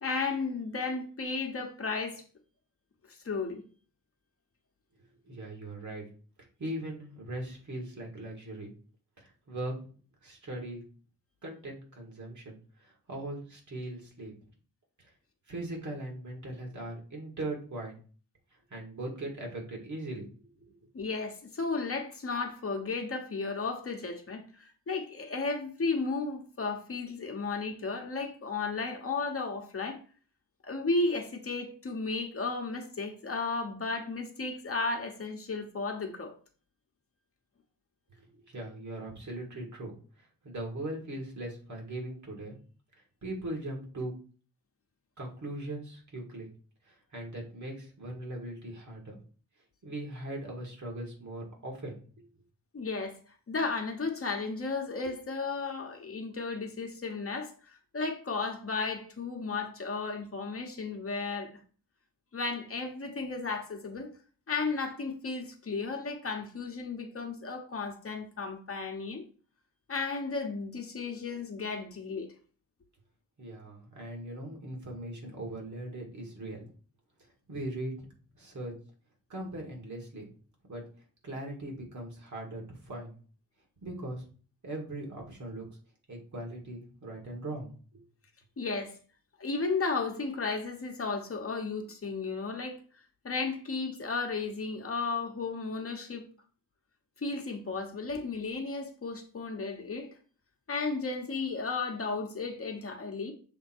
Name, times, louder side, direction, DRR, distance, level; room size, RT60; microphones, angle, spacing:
voice 1, 0.0-2.2 3.1-3.6 20.9-30.0 30.6-36.3 52.7-53.2 53.5-61.5 62.3-64.1 64.5-69.2 69.9-72.3 88.6-89.0 89.4-92.7 93.2-96.3 97.2-100.1 100.7-103.3, left 4 dB, 40° left, 1.1 m, -34 dB
voice 2, 5.2-6.1 6.6-8.7 9.2-9.7 10.2-10.8 11.4-14.3 15.5-18.0 18.7-20.7 38.2-42.6 43.2-44.1 45.2-46.5 46.8-49.2 49.8-52.0 73.4-76.7 77.5-78.7 79.3-80.3 80.7-80.8 81.2-83.2 83.8-84.2 84.6-85.7 86.1-88.0, right 1 dB, 55° right, 2.2 m, -40 dB
6.8 x 3.6 x 4.4 m
wide cardioid pair, 170°, 34 cm